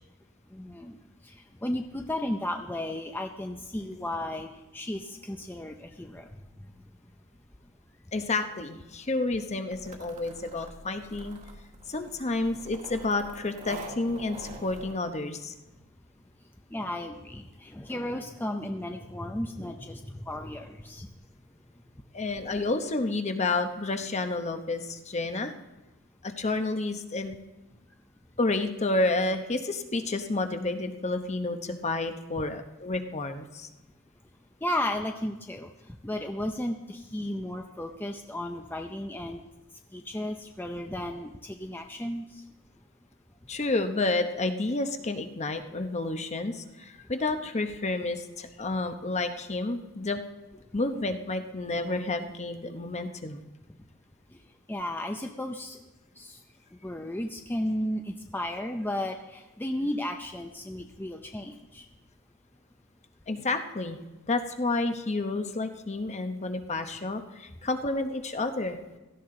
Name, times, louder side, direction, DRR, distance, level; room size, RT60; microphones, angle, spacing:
voice 1, 0.5-1.0 1.2-1.3 1.6-4.5 4.7-6.3 16.7-21.1 34.6-35.7 36.0-39.4 39.9-42.4 54.7-55.8 56.2-56.4 56.8-61.8, left 1 dB, 10° left, 3 dB, 0.6 m, -34 dB
voice 2, 8.1-11.4 11.9-15.5 22.1-25.5 26.2-27.4 28.4-33.7 43.5-50.2 50.7-53.4 63.3-64.0 64.3-68.8, left 2 dB, 35° left, 7 dB, 0.9 m, -30 dB
sound 1, 9.7-14.9, right 2 dB, 35° right, 1.6 m, -45 dB
16.5 x 14.0 x 3.8 m, 1.1 s
head